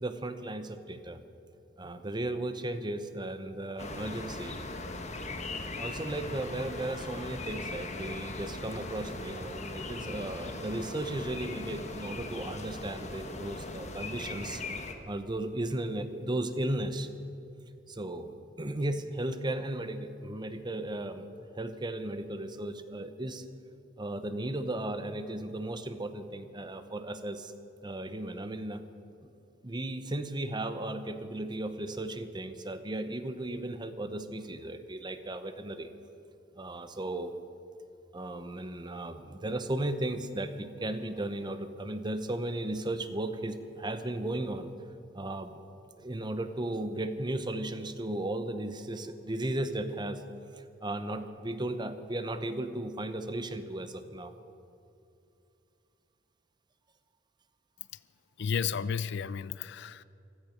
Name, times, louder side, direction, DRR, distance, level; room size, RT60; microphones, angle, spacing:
voice 1, 0.0-1.2 1.8-4.6 5.8-14.6 15.1-17.1 17.9-18.3 18.6-21.3 21.5-23.4 24.0-27.5 27.8-28.8 29.2-29.3 29.6-35.9 36.6-37.3 38.1-44.7 45.1-45.5 46.0-50.2 50.6-54.3, right 1 dB, 25° right, 10 dB, 0.8 m, -35 dB
sound 1, 3.8-14.9, left 2 dB, 35° left, 1.3 m, -39 dB
voice 2, 58.4-60.0, left 6 dB, 60° left, 17 dB, 0.4 m, -32 dB
16.0 x 13.5 x 6.5 m, 2.6 s
head